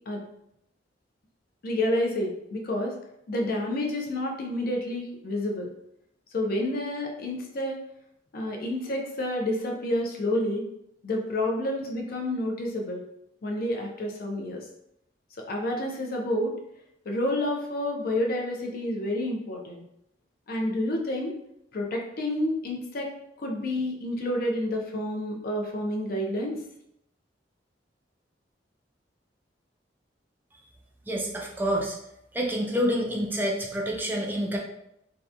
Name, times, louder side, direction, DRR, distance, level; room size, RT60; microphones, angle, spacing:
voice 1, 1.6-2.9 3.3-5.7 6.3-7.8 8.3-10.6 11.0-13.0 13.4-14.6 15.5-16.5 17.1-19.8 20.5-21.3 21.7-23.1 23.4-26.6, left 1 dB, 55° left, 2 dB, 0.5 m, -29 dB
voice 2, 31.1-32.0 32.3-34.6, equal, 10° right, -1 dB, 0.3 m, -27 dB
2.8 x 2.1 x 2.4 m, 0.78 s
head